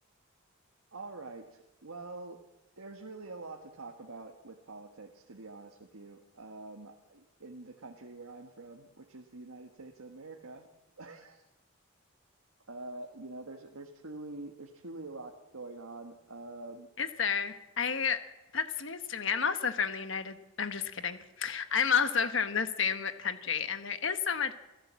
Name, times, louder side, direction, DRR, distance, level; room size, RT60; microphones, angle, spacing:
voice 1, 0.9-2.4 2.8-10.7 11.0-11.4 12.7-16.9, right 2 dB, 85° right, 2 dB, 1.6 m, -46 dB
voice 2, 17.0-18.2 18.5-24.5, left 6 dB, 60° left, 9 dB, 1.3 m, -31 dB
27.5 x 16.0 x 7.5 m, 1.1 s
head